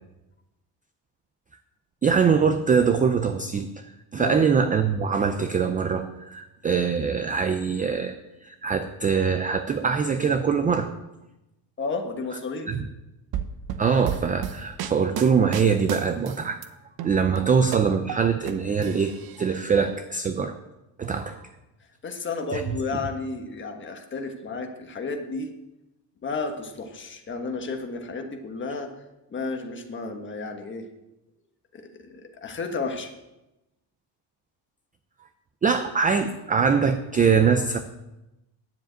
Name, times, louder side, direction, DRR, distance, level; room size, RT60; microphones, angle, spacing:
voice 1, 2.0-3.8 4.1-8.2 8.4-10.9 12.7-12.8 13.8-16.6 17.0-20.5 21.0-21.4 22.5-22.6 35.6-37.8, right 6 dB, 20° right, 8 dB, 0.3 m, -23 dB
voice 2, 11.8-12.7 17.4-17.5 21.1-21.2 22.0-25.5 26.2-28.9 29.3-30.9 31.7-33.1, left 4 dB, 25° left, 4 dB, 1.3 m, -32 dB
sound 1, 13.3-16.7 17.0-18.5 18.8-19.7, right 9 dB, 50° right, 0.9 m, -33 dB
10.5 x 7.4 x 8.8 m, 0.96 s
cardioid pair, 175°, 47 cm